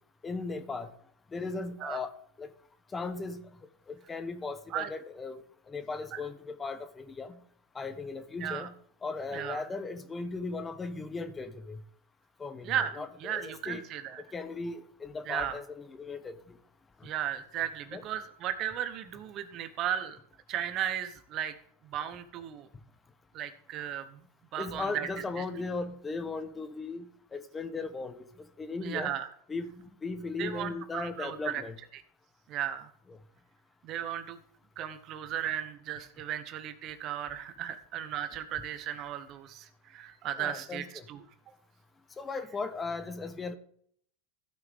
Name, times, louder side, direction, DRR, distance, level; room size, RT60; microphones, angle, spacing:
voice 1, 0.2-0.9 1.3-2.1 2.4-2.5 2.9-3.4 3.9-5.4 5.7-7.4 7.7-8.7 9.0-11.8 12.4-13.9 14.2-16.3 17.0-17.1 17.9-18.0 24.6-28.3 28.6-29.1 29.5-31.7 33.1-33.2 40.4-41.0 42.2-43.5, left 3 dB, 20° left, 11 dB, 1.0 m, -37 dB
voice 2, 12.6-14.2 15.3-15.6 17.0-20.2 20.5-21.5 21.8-22.7 23.3-24.2 24.5-25.1 25.4-25.5 28.8-29.3 30.4-31.6 32.5-32.9 33.8-34.4 34.8-41.2, right 10 dB, 45° right, 11 dB, 1.1 m, -35 dB
15.5 x 6.0 x 3.6 m, 0.63 s
hypercardioid pair, 100°, 0 cm